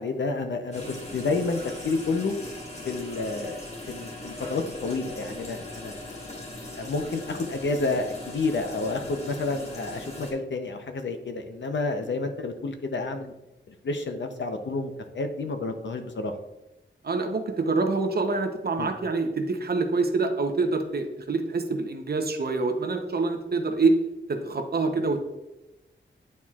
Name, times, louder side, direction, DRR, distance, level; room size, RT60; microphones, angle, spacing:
voice 1, 0.0-2.3 2.8-6.0 6.8-13.3 13.7-16.3 18.8-18.9, left 3 dB, 65° left, 6 dB, 0.7 m, -30 dB
sound 1, 0.7-10.3, left 1 dB, 30° left, 1.5 m, -39 dB
voice 2, 17.0-23.9 24.3-25.2, right 3 dB, 50° right, 5 dB, 0.8 m, -26 dB
9.3 x 4.3 x 2.4 m, 0.97 s
wide cardioid pair, 95°, 20 cm